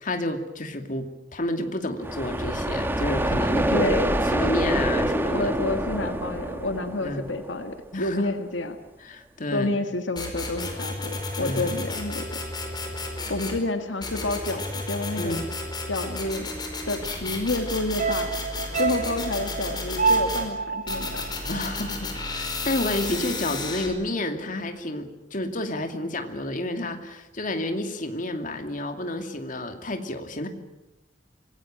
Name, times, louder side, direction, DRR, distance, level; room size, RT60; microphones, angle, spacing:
voice 1, 0.0-4.0 4.3-5.5 6.0-6.1 7.0-7.3 7.9-8.3 9.0-9.7 11.4-11.8 15.2-15.5 21.5-30.5, left 1 dB, 45° left, 6 dB, 2.6 m, -30 dB
sound 1, 2.0-7.8, right 1 dB, 10° right, 1.5 m, -26 dB
voice 2, 3.7-4.2 5.3-8.8 9.5-12.4 13.3-15.4 15.9-16.5 16.9-18.3 18.8-21.2, left 2 dB, 80° left, 7 dB, 1.8 m, -29 dB
sound 2, 10.2-13.6 14.0-20.5 20.9-23.9, left 2 dB, 25° left, 5.1 m, -32 dB
sound 3, 18.0-22.4 22.7-22.8, right 4 dB, 40° right, 1.5 m, -28 dB
26.0 x 19.0 x 9.0 m, 0.99 s
head